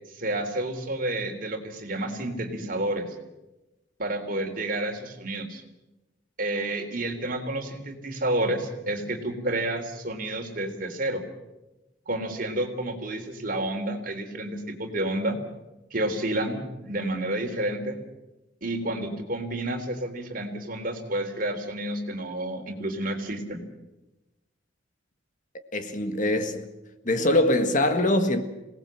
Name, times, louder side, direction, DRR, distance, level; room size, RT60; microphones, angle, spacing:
voice 1, 0.1-3.2 4.0-5.6 6.4-11.2 12.1-15.4 15.9-18.0 18.6-23.6, right 1 dB, 50° right, 3.6 m, -30 dB
voice 2, 25.7-26.7 27.1-28.4, left 1 dB, 45° left, 1.8 m, -23 dB
26.0 x 18.5 x 7.7 m
head